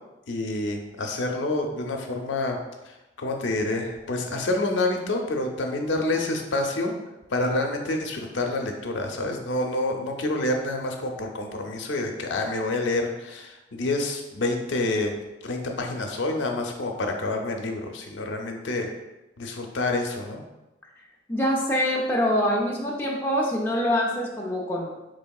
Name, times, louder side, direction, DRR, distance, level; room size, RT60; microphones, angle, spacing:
voice 1, 0.3-2.6 2.9-6.9 7.3-15.1 15.4-18.9 19.4-20.4, left 2 dB, 80° left, 3 dB, 0.5 m, -28 dB
voice 2, 21.3-24.9, equal, 10° left, -3 dB, 0.4 m, -25 dB
4.4 x 3.2 x 2.3 m, 1.0 s
head